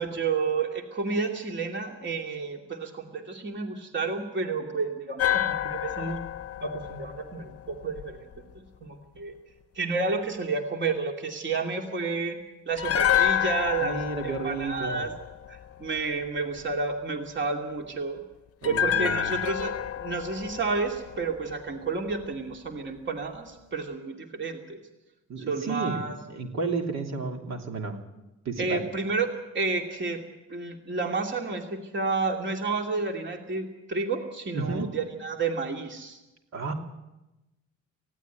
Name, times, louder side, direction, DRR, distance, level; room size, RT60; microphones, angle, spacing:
voice 1, 0.0-6.2 6.6-8.2 8.8-9.3 9.8-12.4 12.7-15.1 15.5-18.2 18.6-24.8 25.5-26.2 28.6-29.3 29.5-30.2 30.5-36.2, right 4 dB, 40° right, 3 dB, 2.7 m, -30 dB
sound 1, 5.2-8.4 12.8-16.0 18.6-21.8 22.1-22.3, left 10 dB, 50° left, 0.8 m, -29 dB
voice 2, 13.8-15.0 18.6-19.4 25.3-26.0 26.3-28.0 28.4-28.8 34.5-34.9 36.5-36.7, right 4 dB, 60° right, 3 dB, 3.1 m, -32 dB
19.0 x 16.0 x 9.2 m, 1.0 s
cardioid pair, 90°, 30 cm